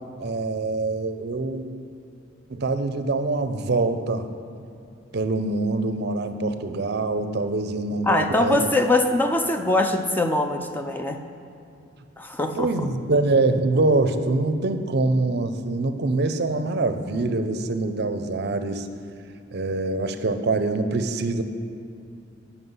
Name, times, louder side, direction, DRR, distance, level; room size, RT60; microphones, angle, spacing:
voice 1, 0.2-1.6 2.5-4.3 5.1-8.7 12.5-18.9 19.5-21.4, right 2 dB, 55° right, 9 dB, 0.5 m, -24 dB
voice 2, 8.1-11.2 12.2-12.9, left 2 dB, 10° left, 5 dB, 0.4 m, -22 dB
9.6 x 5.9 x 5.4 m, 2.6 s
head